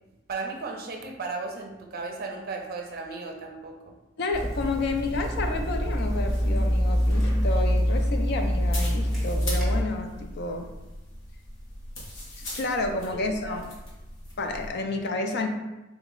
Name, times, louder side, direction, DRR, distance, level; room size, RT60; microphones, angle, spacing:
voice 1, 0.3-3.9 13.4-13.6, right 3 dB, 50° right, 2 dB, 0.5 m, -35 dB
voice 2, 4.2-10.7 12.4-13.6 14.4-15.5, left 2 dB, 55° left, 4 dB, 0.4 m, -30 dB
Water tap faucet / Sink (filling or washing), 4.3-9.8, equal, ahead, 0.9 m, -25 dB
sound 1, 6.0-14.7, left 1 dB, 80° left, 1.0 m, -40 dB
3.6 x 2.0 x 3.6 m, 1.1 s
head